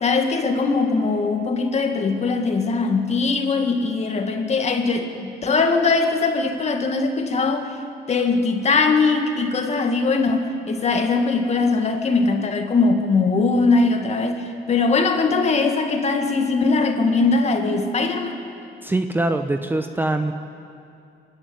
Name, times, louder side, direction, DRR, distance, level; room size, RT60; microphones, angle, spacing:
voice 1, 0.0-7.7 8.1-18.4, left 4 dB, 40° left, 5 dB, 2.1 m, -21 dB
voice 2, 18.8-20.3, right 2 dB, 10° right, 7 dB, 0.9 m, -23 dB
25.5 x 11.5 x 9.3 m, 2.5 s
cardioid pair, 110°, 18 cm